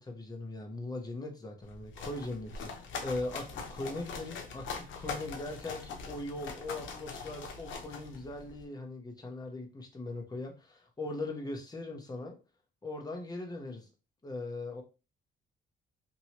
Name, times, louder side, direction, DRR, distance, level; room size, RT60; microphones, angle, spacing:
voice 1, 0.0-12.3 12.8-13.9 14.2-14.8, left 2 dB, 20° left, 2 dB, 0.9 m, -40 dB
sound 1, 1.6-8.6, left 5 dB, 75° left, 0.7 m, -42 dB
2.9 x 2.9 x 2.9 m, 0.32 s
cardioid pair, 90°, 20 cm